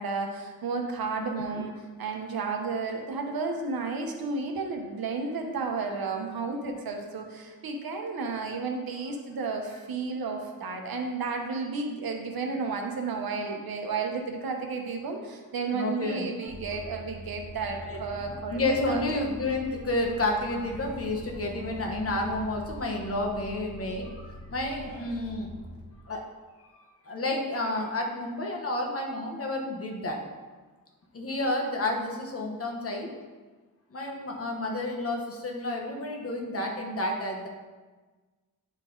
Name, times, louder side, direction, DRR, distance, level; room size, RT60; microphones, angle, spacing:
voice 1, 0.0-1.7 2.0-19.0, right 4 dB, 85° right, 3 dB, 1.1 m, -32 dB
voice 2, 1.2-1.7 15.7-16.3 17.8-25.5 26.0-26.2 26.7-30.2 31.1-33.1 33.9-37.5, left 2 dB, 40° left, 0 dB, 1.0 m, -31 dB
sound 1, 16.5-25.8, equal, 20° left, 1.4 m, -44 dB
9.6 x 4.2 x 3.8 m, 1.3 s
wide cardioid pair, 180°, 35 cm